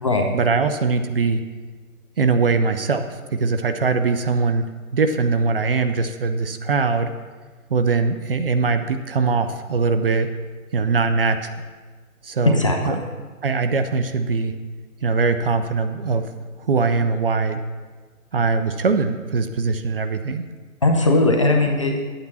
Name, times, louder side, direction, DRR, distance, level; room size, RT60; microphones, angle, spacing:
voice 1, 0.3-1.4 2.2-4.7 4.9-7.1 7.7-10.3 10.7-11.5 12.2-13.0 13.4-14.5 15.0-16.3 16.6-17.6 18.3-20.4, right 4 dB, 45° right, 8 dB, 0.6 m, -21 dB
voice 2, 12.5-13.0 20.8-22.0, left 2 dB, 25° left, 2 dB, 0.5 m, -18 dB
10.0 x 8.6 x 4.2 m, 1.4 s
figure-of-eight pair, 145°, 42 cm